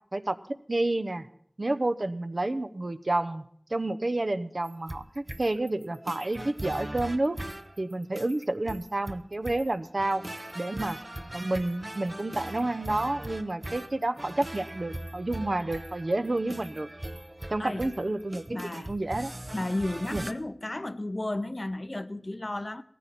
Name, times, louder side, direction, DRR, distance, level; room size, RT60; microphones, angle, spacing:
voice 1, 0.7-1.3 1.6-3.4 3.7-7.4 7.8-10.2 10.5-11.0 11.3-16.9 17.5-19.3 20.1-20.2, right 2 dB, 75° right, 0.8 m, -30 dB
sound 1, 4.6-20.3, right 1 dB, 40° right, 0.8 m, -40 dB
voice 2, 18.5-18.9 19.5-22.8, left 1 dB, 55° left, 0.6 m, -33 dB
18.0 x 14.5 x 4.1 m
wide cardioid pair, 45°, 0 cm